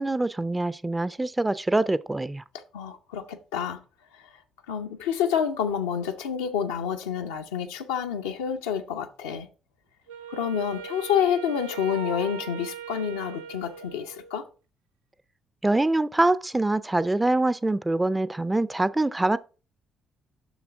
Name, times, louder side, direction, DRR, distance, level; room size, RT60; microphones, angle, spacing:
voice 1, 0.0-2.4 15.6-19.4, right 2 dB, 15° right, 0.4 m, -24 dB
voice 2, 2.7-3.8 4.7-9.5 10.3-14.4, left 8 dB, 85° left, 0.6 m, -28 dB
Wind instrument woodwind instrument, 10.1-14.5, right 7 dB, 85° right, 0.5 m, -39 dB
7.1 x 6.1 x 3.5 m
hypercardioid pair, 50°, 0 cm